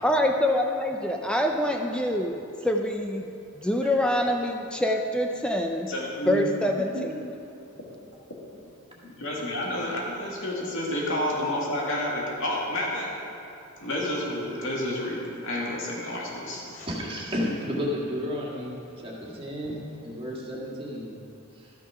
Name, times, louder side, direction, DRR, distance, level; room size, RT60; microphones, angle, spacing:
voice 1, 0.0-2.4 2.6-3.2 3.6-5.9 6.3-7.3, left 1 dB, 5° left, 2 dB, 0.5 m, -25 dB
voice 2, 5.9-6.4 6.9-7.0 9.0-13.1 13.8-16.9, left 1 dB, 65° left, -3 dB, 2.2 m, -30 dB
voice 3, 16.9-18.8 19.0-21.2 21.6-21.7, equal, 25° right, -4 dB, 1.9 m, -32 dB
13.0 x 6.1 x 5.8 m, 2.7 s
head